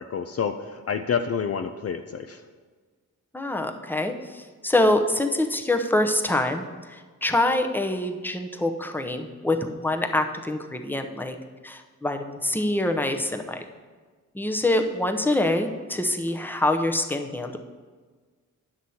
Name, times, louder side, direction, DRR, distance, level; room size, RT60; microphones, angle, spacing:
voice 1, 0.0-2.4, left 6 dB, 45° left, 8 dB, 0.5 m, -28 dB
voice 2, 3.3-11.4 11.6-13.6 14.3-17.6, left 1 dB, 5° left, 5 dB, 0.8 m, -25 dB
9.5 x 6.1 x 4.2 m, 1.4 s
cardioid pair, 60°, 33 cm